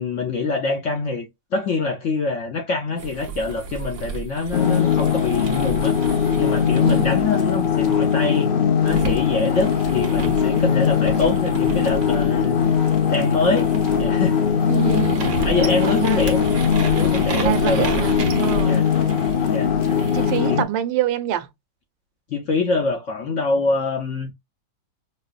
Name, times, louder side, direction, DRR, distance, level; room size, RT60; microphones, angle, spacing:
voice 1, 0.0-6.0 6.4-8.5 8.8-12.6 13.1-13.7 14.0-14.4 15.4-16.5 16.8-18.1 18.6-18.9 19.5-19.7 20.5-20.6 22.3-24.3, left 3 dB, 60° left, 0.8 m, -24 dB
sound 1, 3.0-8.4 8.9-20.5, right 5 dB, 50° right, 1.1 m, -32 dB
sound 2, 4.5-20.6, left 7 dB, 90° left, 0.4 m, -20 dB
voice 2, 6.8-7.3 14.7-16.2 17.4-18.8 20.1-21.5, right 12 dB, 85° right, 1.3 m, -26 dB
5.3 x 2.0 x 2.4 m
omnidirectional pair, 2.0 m